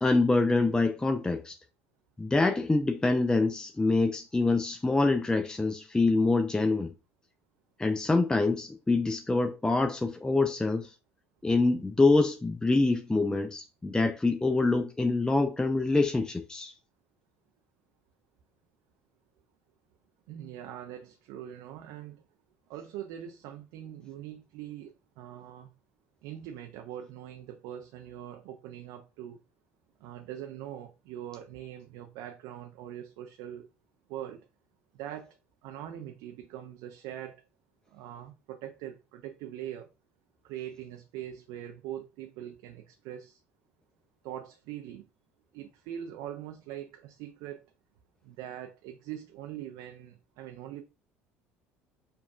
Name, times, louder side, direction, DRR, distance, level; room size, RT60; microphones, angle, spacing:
voice 1, 0.0-1.6 2.2-6.9 7.8-10.9 11.4-16.7, left 3 dB, 10° left, 0.4 m, -25 dB
voice 2, 20.3-22.2 22.7-25.7 26.2-29.4 30.0-33.7 34.1-34.5 34.9-35.4 35.6-37.4 37.9-39.9 40.4-43.4 44.2-45.1 45.5-47.7 48.2-50.8, right 11 dB, 60° right, 0.4 m, -42 dB
5.3 x 2.4 x 2.4 m
figure-of-eight pair, 60°, 7 cm